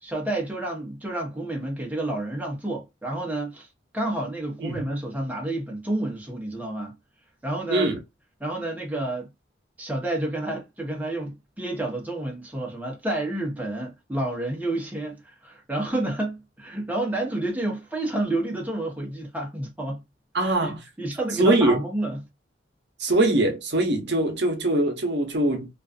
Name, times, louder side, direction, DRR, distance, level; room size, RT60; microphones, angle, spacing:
voice 1, 0.0-3.7 3.9-6.9 7.4-7.9 8.4-9.3 9.8-20.0 20.4-22.2, right 1 dB, 10° right, 0.8 m, -30 dB
voice 2, 20.3-20.8 21.4-21.8 23.0-25.7, right 2 dB, 65° right, 0.7 m, -22 dB
2.4 x 2.3 x 2.3 m
head